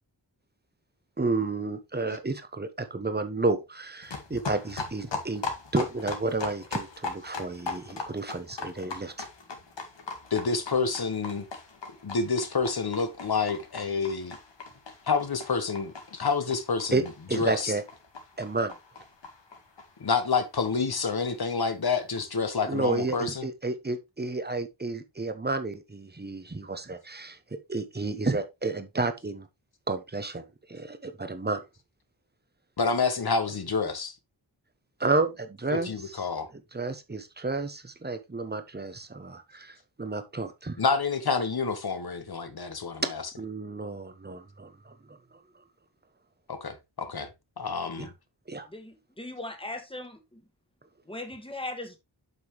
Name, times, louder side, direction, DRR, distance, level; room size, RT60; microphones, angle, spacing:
voice 1, 1.2-5.4 5.7-9.3 16.9-17.0 17.3-17.8 18.4-18.7 22.7-27.4 27.7-29.5 29.9-31.6 35.0-35.9 36.5-40.8 43.4-45.2 48.0-48.1 48.5-48.7, right 3 dB, 25° right, 1.0 m, -31 dB
sound 1, 4.0-21.3 21.5-21.6 21.8-21.9 22.1-22.2 22.5-23.1, left 4 dB, 85° left, 1.8 m, -40 dB
voice 2, 10.3-11.5 12.0-14.4 15.0-17.7 20.0-23.5 32.8-34.1 35.7-36.5 40.8-43.2 46.5-47.3 47.6-48.1, left 4 dB, 60° left, 1.3 m, -28 dB
voice 3, 48.7-50.4 51.1-52.0, left 2 dB, 10° left, 1.6 m, -39 dB
8.2 x 5.4 x 3.1 m
wide cardioid pair, 90°, 42 cm